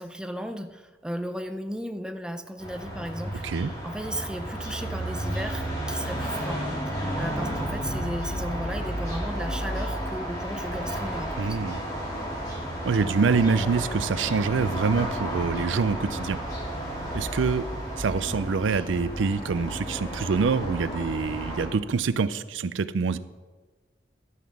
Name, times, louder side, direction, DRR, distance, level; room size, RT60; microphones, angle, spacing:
voice 1, 0.0-11.6, equal, 5° right, 7 dB, 0.5 m, -35 dB
sound 1, 2.6-21.7, equal, 20° left, 3.4 m, -32 dB
voice 2, 11.4-11.8 12.8-16.4 17.1-17.7 18.0-23.2, right 5 dB, 85° right, 15 dB, 0.4 m, -25 dB
12.5 x 5.9 x 6.3 m, 1.3 s
head